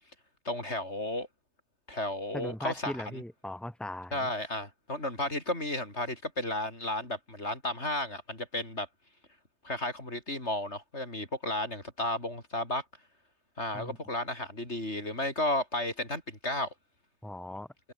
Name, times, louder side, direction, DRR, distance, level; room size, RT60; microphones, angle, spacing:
voice 1, 0.5-1.3 1.9-3.2 4.1-8.9 9.6-12.8 13.6-16.7, left 1 dB, 85° left, 7.3 m, -33 dB
voice 2, 2.3-4.3 13.7-14.0 17.2-17.7, left 1 dB, ahead, 2.6 m, -39 dB
omnidirectional pair, 1.1 m